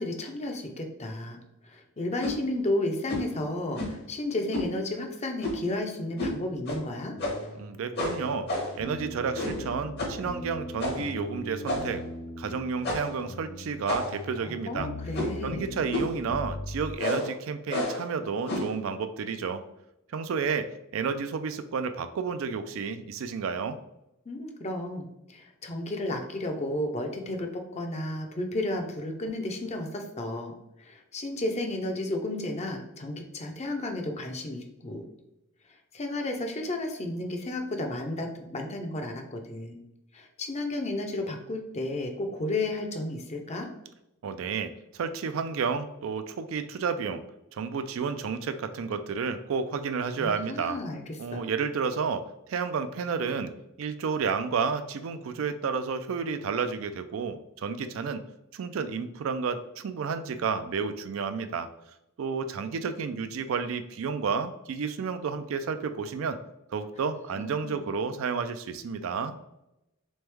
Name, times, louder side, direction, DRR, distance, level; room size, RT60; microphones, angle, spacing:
voice 1, 0.0-1.4 1.6-7.2 14.4-15.7 24.3-30.5 30.8-35.1 35.9-39.8 40.1-43.7 50.2-51.4 67.4-67.7, left 1 dB, 30° left, 3 dB, 0.5 m, -33 dB
sound 1, 2.2-2.4 3.1-3.3 3.7-4.0 4.5-4.7 5.4-5.7 6.2-6.4 6.6-6.8 7.2-7.5 8.0-8.8 9.3-9.7 10.0-10.2 10.8-11.1 11.6-12.0 12.8-13.2 13.9-14.3 15.1-15.4 15.9-16.2 17.0-17.3 17.7-18.1 18.5-18.8, left 1 dB, 50° left, 1.0 m, -31 dB
sound 2, 7.1-16.9, left 1 dB, 85° left, 0.6 m, -40 dB
voice 2, 7.6-8.5 8.7-12.0 12.4-14.9 15.4-19.6 20.1-23.8 44.2-47.2 47.5-50.8 51.2-53.5 53.8-58.2 58.5-61.7 62.2-66.4 66.7-69.3, right 5 dB, 65° right, 10 dB, 0.3 m, -31 dB
3.4 x 3.2 x 3.3 m, 0.87 s
head